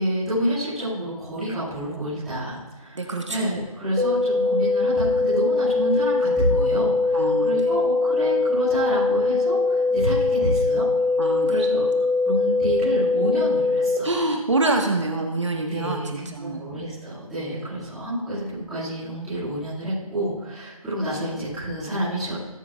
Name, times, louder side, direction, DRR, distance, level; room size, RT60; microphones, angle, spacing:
voice 1, 0.0-3.0 3.3-10.8 11.5-14.3 15.7-22.4, right 1 dB, ahead, -16 dB, 2.1 m, -28 dB
voice 2, 2.9-3.4 7.1-7.6 11.2-11.7 14.0-16.6 17.5-17.6, right 2 dB, 50° right, 2 dB, 1.4 m, -26 dB
sound 1, 4.0-14.0, left 3 dB, 80° right, 1.7 m, -22 dB
19.0 x 9.6 x 2.4 m, 1.2 s
figure-of-eight pair, 175°, 19 cm